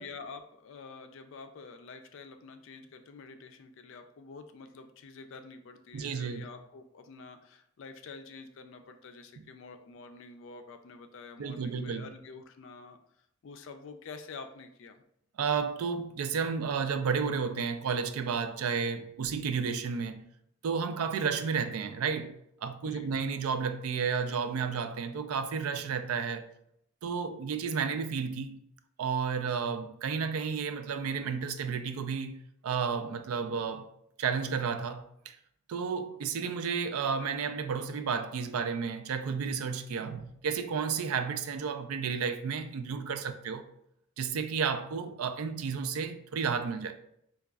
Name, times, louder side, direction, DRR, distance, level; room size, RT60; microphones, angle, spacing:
voice 1, 0.0-15.0 22.8-23.1, left 4 dB, 60° left, 0.4 m, -48 dB
voice 2, 5.9-6.5 11.4-12.1 15.4-20.3 20.6-22.3 22.6-26.4 27.0-28.6 29.0-33.9 34.2-35.4 35.7-43.6 44.2-47.0, right 6 dB, 85° right, 0.4 m, -32 dB
4.8 x 2.3 x 2.3 m
head